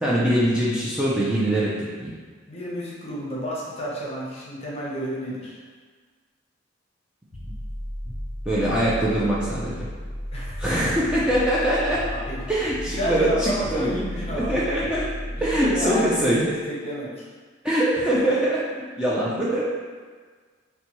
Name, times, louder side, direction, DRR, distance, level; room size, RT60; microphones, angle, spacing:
voice 1, 0.0-2.1 7.4-7.5 8.5-9.9 10.6-12.0 12.5-14.0 14.3-15.0 15.4-16.5 17.6-18.6 19.0-19.6, right 1 dB, 5° right, -8 dB, 0.4 m, -23 dB
voice 2, 2.5-5.6 10.3-10.6 12.1-14.7 15.4-17.2, equal, 35° left, -5 dB, 0.8 m, -31 dB
sound 1, 7.3-16.4, equal, 50° right, 1.3 m, -34 dB
4.1 x 2.2 x 2.9 m, 1.5 s
head